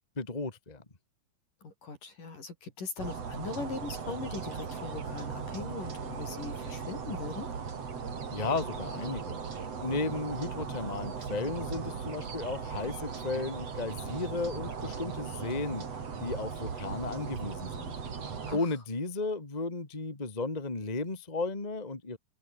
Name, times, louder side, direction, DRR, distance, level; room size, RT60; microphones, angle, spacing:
voice 1, 0.1-0.8 8.3-9.4 9.8-15.8 16.2-17.9 18.5-22.2, left 3 dB, 30° left, 0.7 m, -34 dB
voice 2, 1.6-7.5 18.5-18.7, left 4 dB, 45° left, 8.5 m, -40 dB
sound 1, 3.0-18.6, right 6 dB, 35° right, 3.7 m, -38 dB
open air
omnidirectional pair, 5.4 m